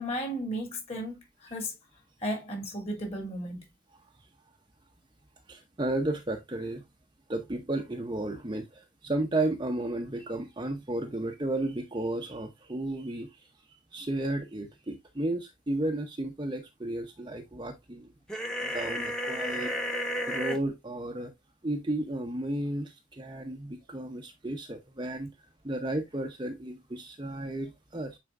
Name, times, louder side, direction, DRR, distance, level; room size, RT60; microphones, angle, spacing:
voice 1, 0.0-1.7 2.2-3.6, equal, 30° left, 2.9 m, -34 dB
voice 2, 5.5-6.8 7.3-13.3 13.9-18.1 18.6-19.7 20.3-21.3 21.6-25.3 25.6-28.2, right 1 dB, 20° right, 0.8 m, -33 dB
sound 1, 18.3-20.6, equal, 5° left, 1.1 m, -32 dB
9.2 x 4.4 x 2.5 m
head